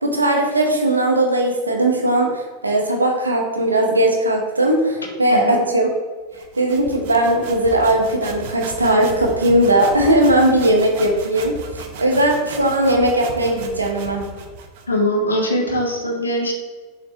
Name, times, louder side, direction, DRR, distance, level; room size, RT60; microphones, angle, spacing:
voice 1, 0.0-5.9 6.5-14.3, right 1 dB, 80° right, 1 dB, 1.1 m, -18 dB
sound 1, 6.3-14.9, right 3 dB, 50° right, 0.8 m, -35 dB
voice 2, 14.9-16.5, equal, 75° left, 0 dB, 1.4 m, -21 dB
7.0 x 4.0 x 3.4 m, 1.5 s
figure-of-eight pair, 90°, 0 cm